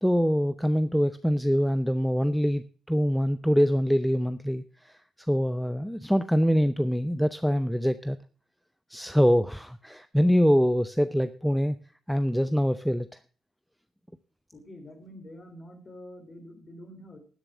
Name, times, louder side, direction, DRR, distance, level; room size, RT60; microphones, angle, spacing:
voice 1, 0.0-4.9 5.3-8.2 8.9-11.8 12.1-13.1, equal, ahead, 12 dB, 0.5 m, -24 dB
voice 2, 14.5-17.2, left 1 dB, 30° left, 4 dB, 4.0 m, -46 dB
12.5 x 7.3 x 6.1 m, 0.39 s
cardioid pair, 90°, 0 cm